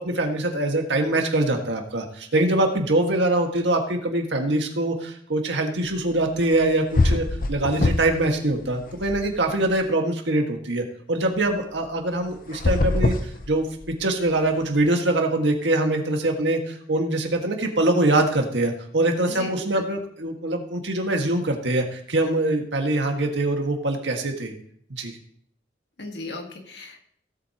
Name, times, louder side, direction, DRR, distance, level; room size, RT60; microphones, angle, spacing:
voice 1, 0.0-13.2 13.5-24.5 24.9-25.2, right 2 dB, 85° right, 3 dB, 1.7 m, -23 dB
sound 1, 6.5-6.6 6.9-8.3 8.6-9.7 12.5-14.0, left 2 dB, 50° left, 0.6 m, -23 dB
voice 2, 19.3-19.8 26.0-27.0, left 2 dB, 70° left, 3 dB, 1.6 m, -36 dB
17.0 x 8.0 x 2.9 m, 0.63 s
head